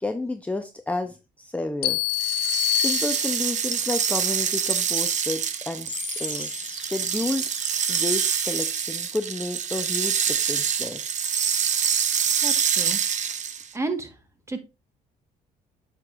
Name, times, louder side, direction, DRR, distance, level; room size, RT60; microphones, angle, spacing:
voice 1, 0.0-2.0 2.7-6.5 6.8-7.4 7.9-11.0, left 2 dB, 10° left, 6 dB, 0.7 m, -31 dB
sound 1, 1.8-3.7, left 17 dB, 70° left, 1.4 m, -26 dB
sound 2, 2.1-13.7, right 7 dB, 45° right, 0.9 m, -26 dB
sound 3, 5.9-8.9, left 5 dB, 25° left, 1.1 m, -40 dB
voice 2, 12.4-13.0 13.7-14.1 14.5-14.6, right 3 dB, 15° right, 7 dB, 1.5 m, -31 dB
8.3 x 6.7 x 2.5 m, 0.26 s
cardioid pair, 110°, 17 cm